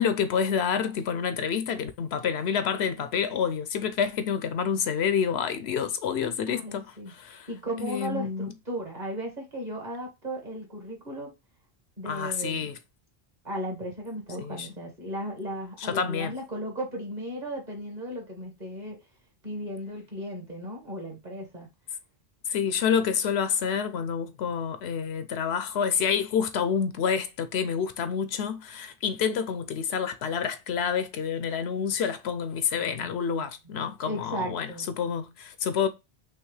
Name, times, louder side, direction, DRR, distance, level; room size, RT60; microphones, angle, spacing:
voice 1, 0.0-7.5 7.8-8.5 12.1-12.8 14.4-14.7 15.8-16.3 22.5-34.7 35.0-35.9, left 7 dB, 75° left, 0.9 m, -28 dB
voice 2, 6.5-11.3 12.0-12.7 13.4-19.0 19.4-21.7 32.8-33.5 34.1-34.9, equal, 40° right, 1.9 m, -36 dB
5.7 x 2.9 x 3.2 m
omnidirectional pair, 1.1 m